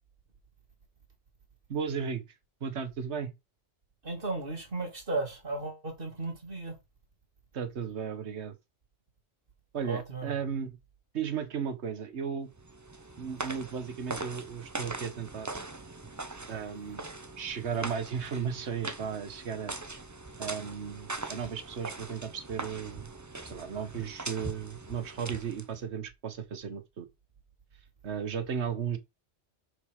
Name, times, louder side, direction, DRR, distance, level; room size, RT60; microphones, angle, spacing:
voice 1, 1.7-2.2 2.6-3.3 7.5-8.6 9.7-10.8 11.1-12.5 13.2-15.5 16.5-17.1 17.4-19.8 20.4-23.1 23.5-27.1 28.0-29.0, right 7 dB, 65° right, 1.5 m, -35 dB
voice 2, 4.0-6.7 9.8-10.3, right 3 dB, 45° right, 3.0 m, -35 dB
sound 1, 12.5-25.8, right 2 dB, 20° right, 0.7 m, -41 dB
6.5 x 5.0 x 6.5 m
omnidirectional pair, 1.2 m